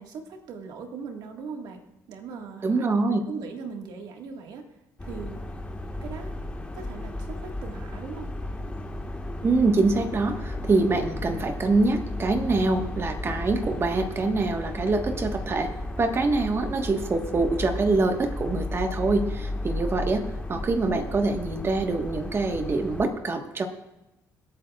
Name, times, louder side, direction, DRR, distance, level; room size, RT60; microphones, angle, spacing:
voice 1, 0.0-1.8 2.1-4.7 5.0-5.4 6.0-6.4 6.7-8.3, right 5 dB, 80° right, 3 dB, 1.8 m, -39 dB
voice 2, 2.6-3.2 9.4-15.7 16.0-23.7, right 3 dB, 35° right, 5 dB, 1.5 m, -25 dB
sound 1, 5.0-23.0, left 1 dB, 15° left, 1.6 m, -34 dB
26.0 x 8.6 x 2.4 m, 0.96 s
cardioid pair, 95°, 7 cm